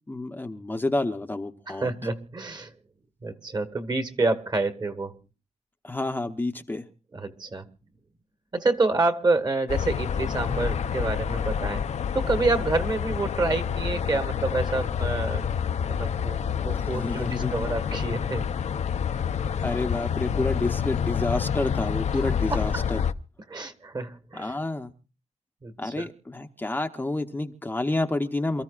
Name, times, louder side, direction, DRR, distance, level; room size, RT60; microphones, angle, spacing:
voice 1, 0.1-1.9 5.8-6.9 16.7-17.7 19.6-23.0 24.3-24.9 25.8-28.6, left 2 dB, 15° left, 5 dB, 0.8 m, -29 dB
voice 2, 1.7-2.7 3.2-5.1 7.1-7.7 8.5-11.9 12.1-15.5 15.9-18.5 22.5-22.8 23.5-24.5 25.6-26.1, right 3 dB, 35° right, 9 dB, 1.5 m, -28 dB
sound 1, 9.7-23.1, left 7 dB, 70° left, 0.7 m, -28 dB
28.0 x 14.0 x 2.4 m, 0.35 s
wide cardioid pair, 165°, 12 cm